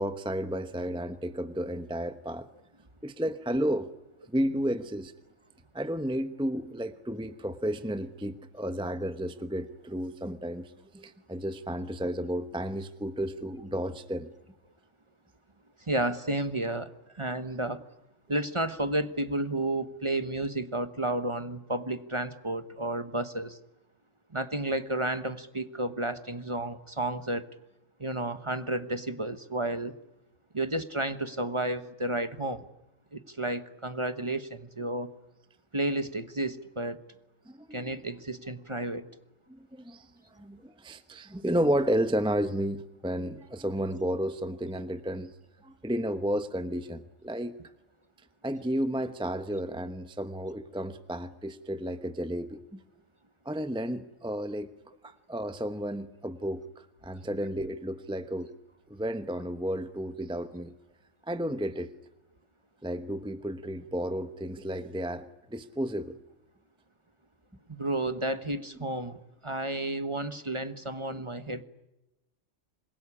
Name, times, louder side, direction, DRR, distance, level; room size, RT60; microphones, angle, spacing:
voice 1, 0.0-2.5 3.0-3.9 4.3-5.1 5.7-14.3 37.5-37.9 39.5-40.1 40.4-45.3 45.6-47.6 48.4-52.8 53.4-54.7 55.0-58.5 58.9-60.7 61.3-61.9 62.8-66.2 71.1-71.2, equal, 5° right, 10 dB, 0.9 m, -32 dB
voice 2, 15.9-17.8 18.3-23.6 24.3-27.5 28.0-29.9 30.5-32.6 33.1-35.1 35.7-37.0 37.7-39.0 67.7-71.6, right 1 dB, 25° right, 11 dB, 1.2 m, -32 dB
26.5 x 22.0 x 9.9 m, 0.97 s
omnidirectional pair, 1.3 m